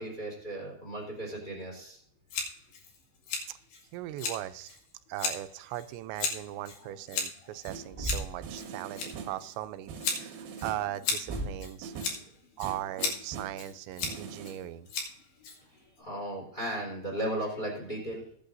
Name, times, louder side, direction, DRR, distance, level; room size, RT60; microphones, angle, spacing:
voice 1, 0.0-2.0 15.7-18.3, right 1 dB, 10° left, -2 dB, 4.2 m, -36 dB
Scissors, 2.3-16.0, left 4 dB, 70° left, 4.3 m, -37 dB
voice 2, 3.9-4.8 5.1-11.9 12.6-14.9, right 14 dB, 90° right, 11 dB, 3.0 m, -39 dB
sound 1, 7.7-8.0 8.4-9.5 9.9-11.0 11.3-12.3 12.6-13.7 14.0-14.5, right 6 dB, 65° right, 2.9 m, -43 dB
Thump thud, 7.9-8.6 11.3-11.8, right 2 dB, 30° right, 1.0 m, -36 dB
21.5 x 8.8 x 2.6 m, 0.64 s
omnidirectional pair, 5.1 m